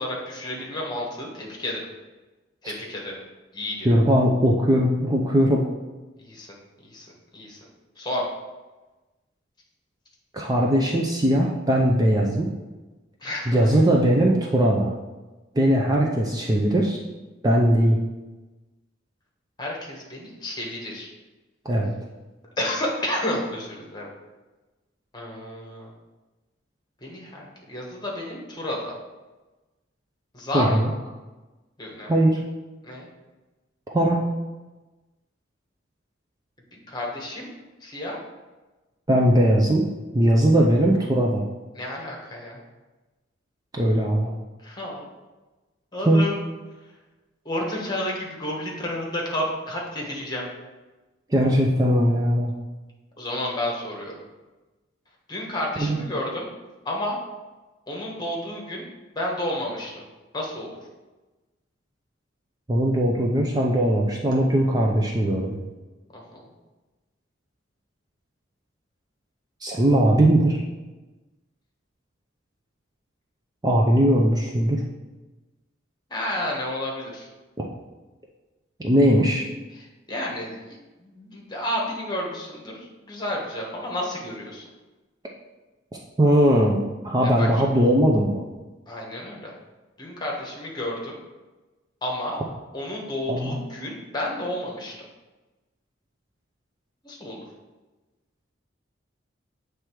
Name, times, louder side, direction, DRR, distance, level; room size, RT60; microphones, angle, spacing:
voice 1, 0.0-1.8 2.6-3.2 3.5-3.9 6.2-6.5 6.8-7.1 7.3-7.6 8.0-8.3 13.2-13.6 19.6-21.1 22.6-24.1 25.1-25.9 27.0-28.9 30.3-30.9 31.8-32.1 32.8-33.1 36.9-37.5 37.8-38.2 41.7-42.6 44.6-45.0 45.9-46.4 47.4-50.4 53.2-54.2 55.3-56.5 56.8-57.2 57.9-58.8 59.1-60.0 60.3-60.7 66.1-66.5 76.1-77.3 79.7-84.6 87.2-87.5 88.9-89.5 90.0-91.2 92.0-92.4 92.7-94.9 97.0-97.4, left 1 dB, 20° left, -2 dB, 1.3 m, -31 dB
voice 2, 3.8-5.6 10.3-12.5 13.5-14.9 15.6-17.0 17.4-18.0 21.7-21.9 30.5-30.9 32.1-32.4 33.9-34.2 39.1-39.8 40.1-41.4 43.7-44.3 46.1-46.2 51.3-52.5 55.8-56.0 62.7-65.6 69.6-70.6 73.6-74.8 77.6-77.7 78.8-79.5 86.2-88.4 93.3-93.6, right 1 dB, 20° right, -1 dB, 0.5 m, -20 dB
7.5 x 3.3 x 4.7 m, 1.2 s
head